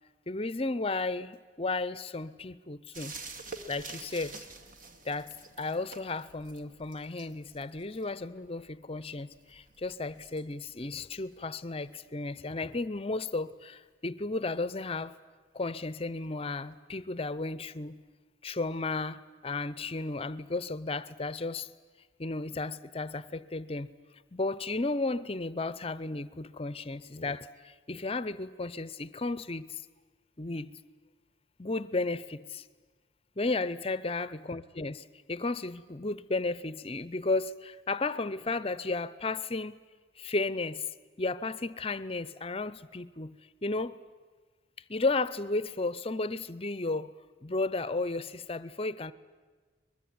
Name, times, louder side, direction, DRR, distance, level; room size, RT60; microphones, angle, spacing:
voice 1, 0.3-3.2 3.7-4.5 5.0-15.1 15.5-18.0 18.4-21.7 22.2-23.9 24.3-29.8 30.4-30.7 31.6-32.6 33.4-39.8 40.2-40.8 41.2-44.0 44.9-47.1 47.4-49.1, left 3 dB, 30° left, 16 dB, 0.7 m, -34 dB
sound 1, 2.9-12.3 14.4-14.5, right 4 dB, 45° right, 1.9 m, -49 dB
23.5 x 21.5 x 9.7 m, 1.4 s
head